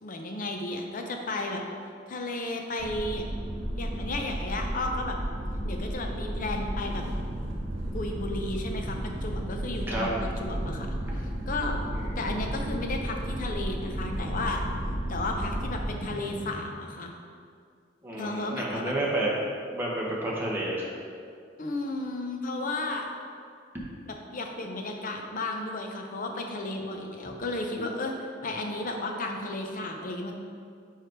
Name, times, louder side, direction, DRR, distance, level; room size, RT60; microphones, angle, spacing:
voice 1, 0.0-1.6 2.1-3.2 3.8-5.2 5.6-7.0 7.9-10.9 11.1-11.8 12.2-14.6 15.1-17.1 18.2-18.9 21.6-23.0 24.1-28.1 28.4-30.4, left 2 dB, 45° left, 3 dB, 0.6 m, -33 dB
sound 1, 2.8-15.9, equal, 35° right, 0.9 m, -33 dB
sound 2, 6.8-16.5, right 1 dB, 75° right, 0.8 m, -42 dB
voice 2, 11.9-12.2 18.0-19.3 19.7-20.8, right 1 dB, 10° right, -5 dB, 1.1 m, -30 dB
4.9 x 4.8 x 4.5 m, 2.2 s
head